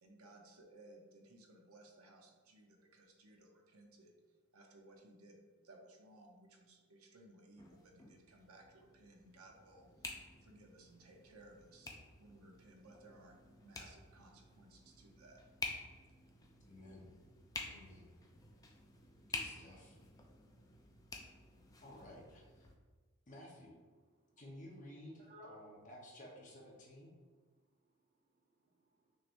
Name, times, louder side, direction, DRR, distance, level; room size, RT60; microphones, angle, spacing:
voice 1, 0.0-15.4, right 2 dB, 85° right, 1 dB, 0.8 m, -61 dB
sound 1, 7.6-22.7, left 3 dB, 15° left, 0.4 m, -50 dB
voice 2, 16.6-17.1 17.7-18.1 19.3-20.0 21.8-22.7 23.3-23.8 24.4-27.2, left 1 dB, 35° left, -3 dB, 1.1 m, -54 dB
voice 3, 24.1-24.4 25.1-25.6 27.6-29.2, equal, 35° right, 0 dB, 0.8 m, -62 dB
6.2 x 3.2 x 2.6 m, 1.4 s
head